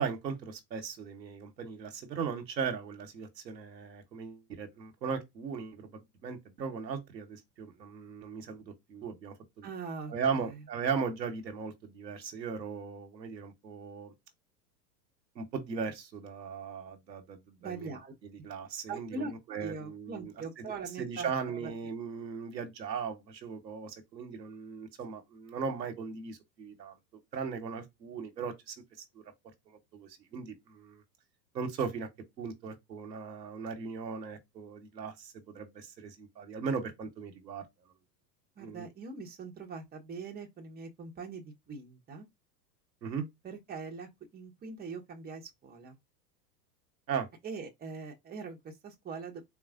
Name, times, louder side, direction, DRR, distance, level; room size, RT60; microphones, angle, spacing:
voice 1, 0.0-9.7 10.1-14.1 15.4-17.9 18.4-20.3 20.6-20.7 21.0-26.9 27.3-29.2 29.9-31.0 31.5-32.1 32.4-37.6 38.6-38.8 43.0-43.2 47.1-47.3, right 6 dB, 85° right, 1.1 m, -38 dB
voice 2, 9.6-10.7 17.6-18.1 18.9-19.3 19.6-21.7 38.6-42.3 43.4-46.0 47.4-49.4, right 4 dB, 20° right, 1.0 m, -42 dB
4.0 x 3.1 x 2.5 m
hypercardioid pair, 95°, 50 cm